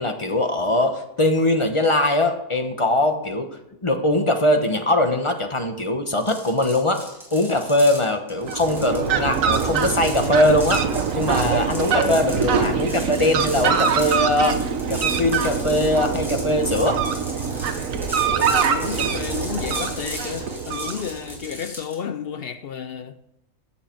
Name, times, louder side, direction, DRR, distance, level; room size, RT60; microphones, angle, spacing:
voice 1, 0.0-3.5 3.8-7.0 7.3-10.8 11.2-14.6 14.9-16.9, left 1 dB, 25° left, 0.9 m, -21 dB
sound 1, 6.2-22.0, equal, ahead, 3.0 m, -37 dB
Fowl, 8.4-21.4, right 6 dB, 65° right, 1.3 m, -24 dB
voice 2, 18.2-23.2, left 7 dB, 65° left, 0.6 m, -32 dB
14.5 x 7.3 x 4.6 m
omnidirectional pair, 1.5 m